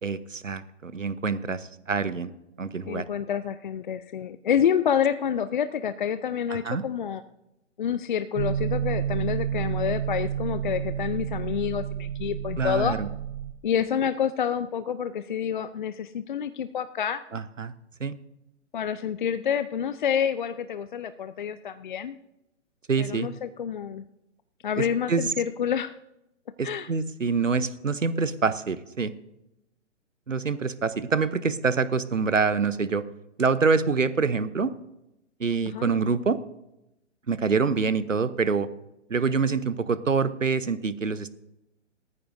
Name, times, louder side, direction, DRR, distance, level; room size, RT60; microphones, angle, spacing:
voice 1, 0.0-2.3 2.6-3.0 6.5-6.8 12.6-13.1 17.3-17.7 18.0-18.1 22.9-23.3 24.8-25.2 26.6-29.1 30.3-33.0 33.4-34.7 35.4-36.4 37.3-38.7 39.1-41.3, right 5 dB, 90° right, 15 dB, 0.9 m, -26 dB
voice 2, 2.9-7.2 7.8-13.0 13.6-17.2 18.7-22.2 23.0-24.0 24.6-26.0 26.6-26.9 35.7-35.9, left 8 dB, 40° left, 12 dB, 0.5 m, -28 dB
sound 1, 8.4-13.5, right 9 dB, 55° right, 0.8 m, -30 dB
18.5 x 14.0 x 2.7 m, 0.89 s
figure-of-eight pair, 130°, 37 cm